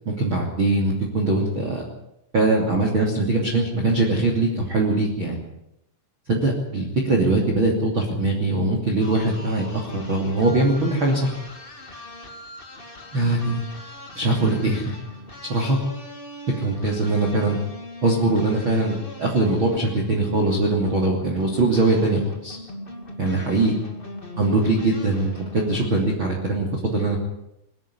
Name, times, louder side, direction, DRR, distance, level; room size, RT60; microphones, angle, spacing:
voice 1, 0.0-1.9 2.3-5.4 6.3-11.3 13.1-13.6 14.2-14.8 15.5-15.8 16.6-17.6 18.0-22.6 23.2-23.7 24.4-27.2, right 2 dB, 30° right, 1 dB, 2.7 m, -22 dB
sound 1, 9.0-26.1, left 1 dB, 50° left, 0.6 m, -40 dB
22.0 x 12.5 x 9.7 m, 0.83 s
omnidirectional pair, 5.6 m